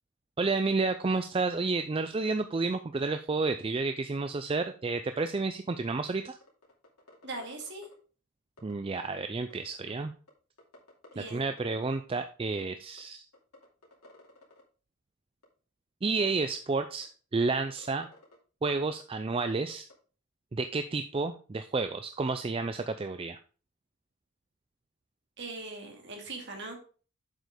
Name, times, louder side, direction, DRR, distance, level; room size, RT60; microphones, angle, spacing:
voice 1, 0.4-6.4 8.6-10.1 11.3-13.2 16.0-18.1 18.6-19.9 20.5-23.4, right 3 dB, 25° right, 9 dB, 0.3 m, -30 dB
sound 1, 5.2-5.4 5.7-5.8 6.2-7.9 8.6-8.7 9.4-9.9 10.3-10.4 10.6-11.8 12.1-12.2 12.4-12.6 13.0-13.1 13.3-14.6 15.4-15.5 16.1-16.2 16.5-16.6 17.0-17.1 17.4-18.4 19.7-19.9, left 2 dB, 90° left, 2.7 m, -54 dB
voice 2, 7.2-7.9 11.1-11.5 25.4-26.8, right 2 dB, 50° right, 1 dB, 2.4 m, -40 dB
7.6 x 5.3 x 4.8 m, 0.38 s
head